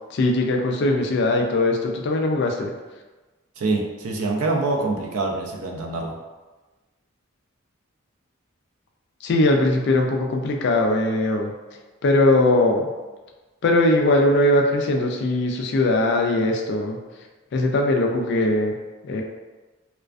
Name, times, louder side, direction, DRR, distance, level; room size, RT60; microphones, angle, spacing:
voice 1, 0.1-2.7 9.2-11.5 12.0-12.9 13.6-18.8 19.0-19.2, left 2 dB, 55° left, 1 dB, 0.3 m, -20 dB
voice 2, 3.6-6.2, right 3 dB, 85° right, 1 dB, 0.4 m, -25 dB
2.4 x 2.2 x 2.4 m, 1.2 s
head